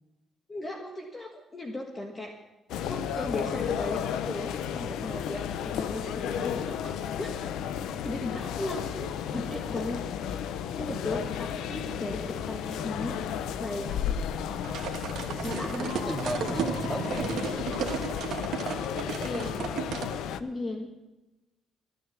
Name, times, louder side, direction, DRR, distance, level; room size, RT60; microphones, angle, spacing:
voice 1, 0.5-2.4 2.9-7.3 8.0-10.0 10.7-13.2 13.6-14.7 15.6-15.7 19.0-19.6 20.4-20.9, left 2 dB, 30° left, 2 dB, 1.6 m, -36 dB
sound 1, 2.7-20.4, left 8 dB, 85° left, 0.6 m, -33 dB
sound 2, 14.6-20.1, right 8 dB, 75° right, 1.4 m, -34 dB
voice 2, 15.4-17.5, right 1 dB, 5° left, 2 dB, 2.9 m, -34 dB
14.0 x 9.9 x 7.3 m, 1.1 s
cardioid pair, 90°, 0 cm